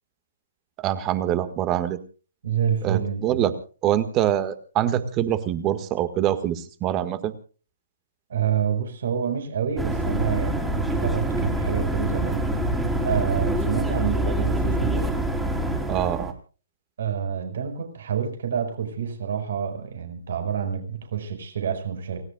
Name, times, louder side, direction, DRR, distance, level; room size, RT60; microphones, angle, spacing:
voice 1, 0.8-2.0 2.8-3.5 3.8-7.3 15.9-16.3, right 11 dB, 25° right, 12 dB, 1.8 m, -24 dB
voice 2, 2.4-3.5 8.3-12.5 13.0-15.1 17.0-22.2, right 8 dB, 65° right, 6 dB, 5.2 m, -28 dB
sound 1, 9.8-16.3, right 1 dB, 5° right, 3.4 m, -25 dB
29.5 x 16.5 x 2.4 m, 0.38 s
hypercardioid pair, 150°, 0 cm